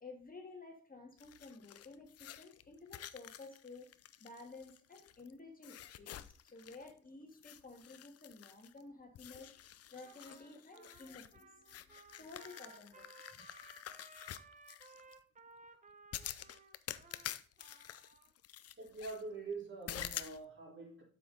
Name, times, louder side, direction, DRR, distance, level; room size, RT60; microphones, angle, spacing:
voice 1, 0.0-3.9 4.2-13.5, left 3 dB, 30° left, 1.8 m, -53 dB
sound 1, 1.2-5.3 5.6-7.0 7.3-8.8 9.1-15.1 16.1-19.2 19.9-20.4, left 11 dB, 55° left, 0.6 m, -49 dB
Trumpet, 10.0-18.3, right 3 dB, 25° right, 1.1 m, -60 dB
voice 2, 18.8-21.0, right 3 dB, 40° right, 4.0 m, -45 dB
7.8 x 5.9 x 3.9 m
cardioid pair, 90°, 30 cm